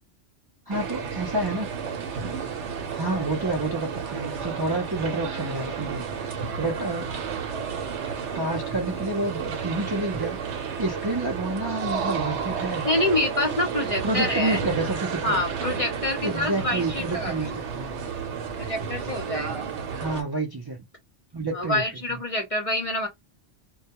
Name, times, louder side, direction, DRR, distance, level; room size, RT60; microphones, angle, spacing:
voice 1, 0.7-1.7 2.9-6.0 6.6-7.1 8.3-10.4 10.8-12.9 14.0-15.4 16.2-17.9 20.0-20.8 21.3-22.2, right 2 dB, 35° right, 0.4 m, -29 dB
sound 1, 0.7-20.2, right 6 dB, 70° right, 1.0 m, -32 dB
voice 2, 12.8-14.7 15.2-17.6 18.5-19.7 21.5-23.1, left 1 dB, 35° left, 0.7 m, -27 dB
2.2 x 2.2 x 2.8 m
omnidirectional pair, 1.2 m